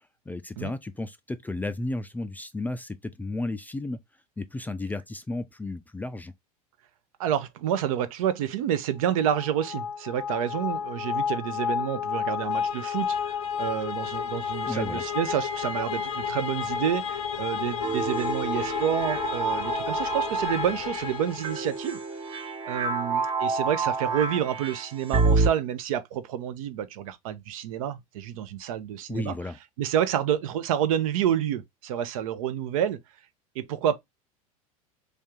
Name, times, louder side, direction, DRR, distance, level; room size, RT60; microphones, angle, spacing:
voice 1, 0.0-4.0 4.4-6.3 14.7-15.0 29.1-29.6, left 2 dB, 10° left, 0.4 m, -33 dB
voice 2, 7.2-22.0 22.6-29.4 29.8-33.0 33.5-34.0, right 10 dB, 65° right, 0.7 m, -29 dB
sound 1, 9.2-22.0, left 7 dB, 70° left, 0.6 m, -31 dB
sound 2, 17.8-25.5, right 4 dB, 30° right, 0.8 m, -28 dB
3.4 x 2.7 x 3.5 m
hypercardioid pair, 80°, 19 cm